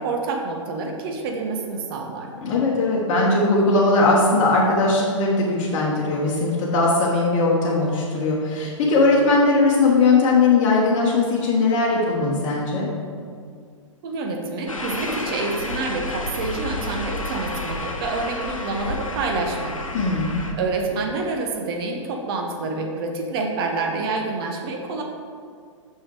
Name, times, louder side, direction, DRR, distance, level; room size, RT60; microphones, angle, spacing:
voice 1, 0.0-2.3 14.0-19.8 20.5-25.0, right 3 dB, 45° right, 2 dB, 1.0 m, -27 dB
voice 2, 2.4-12.9 19.9-20.4, left 3 dB, 35° left, -5 dB, 1.2 m, -19 dB
sound 1, 14.7-20.5, left 2 dB, 90° left, 0.8 m, -30 dB
6.0 x 5.9 x 4.8 m, 2.1 s
figure-of-eight pair, 110°, 17 cm